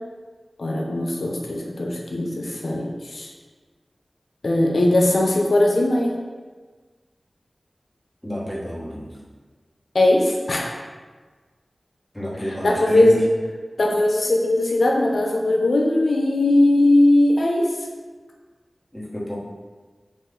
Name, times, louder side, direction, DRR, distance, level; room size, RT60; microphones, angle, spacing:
voice 1, 0.6-3.3 4.4-6.1 9.9-10.7 12.6-13.2 13.8-17.6, left 1 dB, 80° left, -1 dB, 0.5 m, -19 dB
voice 2, 8.2-9.1 12.1-13.2 18.9-19.4, equal, ahead, -7 dB, 1.2 m, -30 dB
5.4 x 2.4 x 3.7 m, 1.4 s
wide cardioid pair, 75°, 0 cm